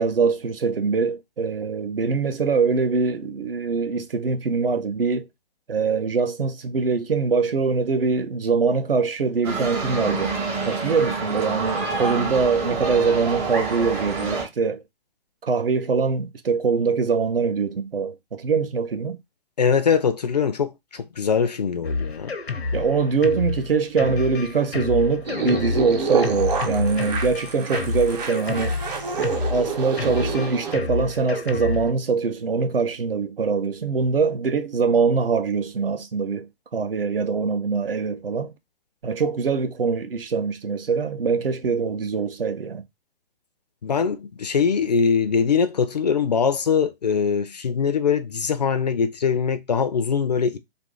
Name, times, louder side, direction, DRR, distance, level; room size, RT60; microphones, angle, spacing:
voice 1, 0.0-5.3 5.7-10.3 10.7-14.8 15.4-19.2 22.7-28.7 29.1-38.5 39.0-42.8, right 5 dB, 65° right, 0.6 m, -23 dB
sound 1, 9.4-14.5, right 4 dB, 15° right, 0.6 m, -27 dB
voice 2, 19.6-22.4 43.8-50.6, left 6 dB, 45° left, 0.4 m, -22 dB
Drum kit, 21.8-31.9, left 3 dB, 80° left, 0.7 m, -29 dB
sound 2, 25.2-30.8, right 5 dB, 45° right, 0.9 m, -28 dB
2.6 x 2.5 x 3.6 m
figure-of-eight pair, 130°, 31 cm